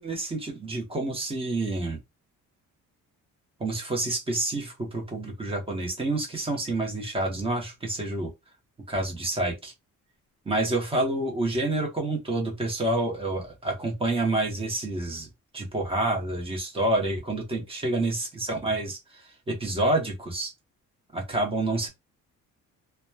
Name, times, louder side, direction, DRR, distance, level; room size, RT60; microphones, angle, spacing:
voice 1, 0.0-2.0 3.6-8.3 8.9-9.7 10.5-15.3 15.5-20.5 21.1-21.9, right 2 dB, 15° right, 0.9 m, -28 dB
2.9 x 2.2 x 2.2 m
cardioid pair, 140°, 32 cm